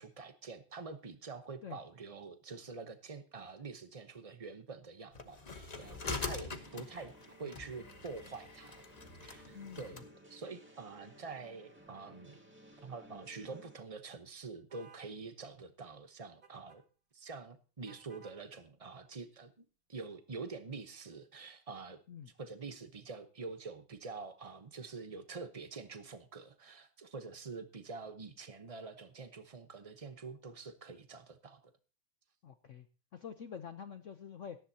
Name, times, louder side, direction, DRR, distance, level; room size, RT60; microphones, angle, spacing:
voice 1, 0.0-8.8 9.2-12.4 12.8-16.8 17.1-22.0 22.4-31.6, right 4 dB, 60° right, 9 dB, 0.3 m, -46 dB
sound 1, 5.1-10.1, left 4 dB, 30° left, 0.7 m, -44 dB
sound 2, 5.8-13.8, right 1 dB, 5° right, 1.8 m, -58 dB
voice 2, 6.1-6.4 6.8-6.9 9.5-10.0 22.1-22.3 32.4-32.9 33.1-34.6, left 7 dB, 80° left, 9 dB, 0.6 m, -47 dB
sound 3, 14.7-15.1 16.4-16.8 17.9-18.4, right 6 dB, 25° right, 1.6 m, -58 dB
18.0 x 13.5 x 2.8 m, 0.35 s
omnidirectional pair, 2.3 m